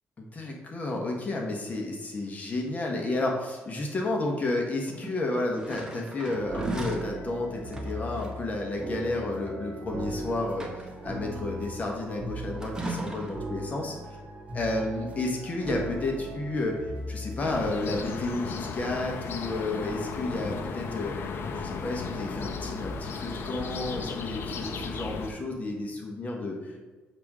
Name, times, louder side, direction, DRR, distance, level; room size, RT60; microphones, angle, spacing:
voice 1, 0.2-13.9 14.5-16.7 17.1-21.1 21.5-26.9, left 2 dB, 35° left, 0 dB, 1.3 m, -31 dB
sound 1, 4.8-7.1 7.7-8.4 9.9-10.0 10.4-11.1 12.6-13.5 14.7-15.3 15.6-15.8, right 2 dB, 15° right, 1.2 m, -38 dB
Jazz Background Music Loop, 6.3-17.4, right 1 dB, 30° right, 1.6 m, -38 dB
sound 2, 17.4-25.3, left 5 dB, 65° left, 0.7 m, -35 dB
7.3 x 3.7 x 6.1 m, 1.3 s
cardioid pair, 120°, 4 cm